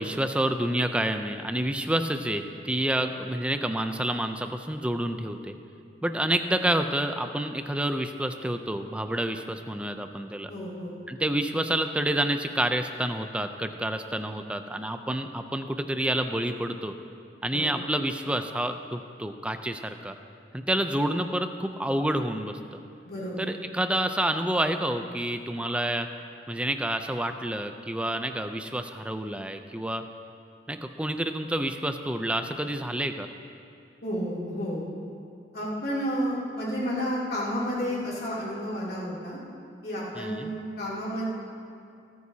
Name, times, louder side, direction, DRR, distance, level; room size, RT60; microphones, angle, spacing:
voice 1, 0.0-5.5 6.0-10.5 11.1-16.9 17.4-20.1 20.5-22.8 23.4-26.1 26.5-30.0 30.7-33.3 40.1-40.5, right 1 dB, 5° right, 7 dB, 0.5 m, -28 dB
voice 2, 10.5-10.9 17.5-17.7 23.0-23.5 34.0-34.8 35.5-39.4 39.8-41.3, equal, 60° left, -7 dB, 3.0 m, -31 dB
26.5 x 9.5 x 2.8 m, 2.4 s
head